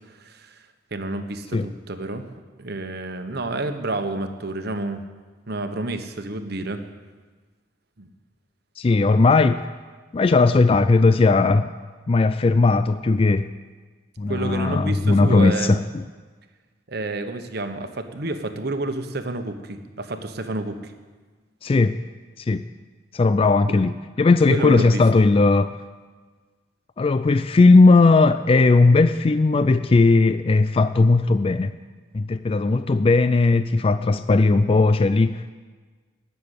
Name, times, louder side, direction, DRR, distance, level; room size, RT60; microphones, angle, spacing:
voice 1, 0.1-0.6 0.9-2.2 2.6-5.0 5.5-6.9 8.0-8.1 14.3-15.8 16.9-20.9 24.5-25.0, right 2 dB, 60° right, 7 dB, 1.2 m, -29 dB
voice 2, 8.8-9.7 10.1-11.7 12.1-13.5 14.2-16.0 21.6-22.0 22.4-22.7 23.1-25.7 27.0-31.7 32.1-35.5, left 3 dB, 30° left, 12 dB, 0.3 m, -17 dB
18.5 x 6.9 x 8.3 m, 1.4 s
head